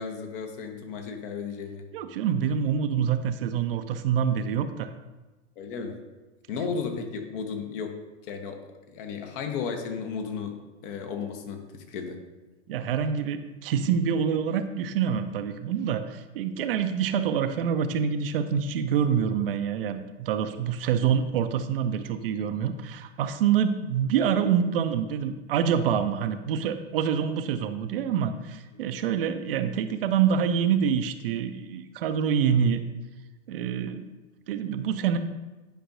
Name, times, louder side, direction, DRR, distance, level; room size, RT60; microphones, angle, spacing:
voice 1, 0.0-1.8 5.6-6.0 6.5-7.9 8.2-8.6 8.9-10.6 10.8-12.2, left 5 dB, 45° left, 4 dB, 1.1 m, -34 dB
voice 2, 1.9-4.9 12.7-32.9 33.5-34.0 34.5-35.2, right 8 dB, 55° right, 9 dB, 0.5 m, -26 dB
10.0 x 5.4 x 2.7 m, 1.1 s
figure-of-eight pair, 95°, 35 cm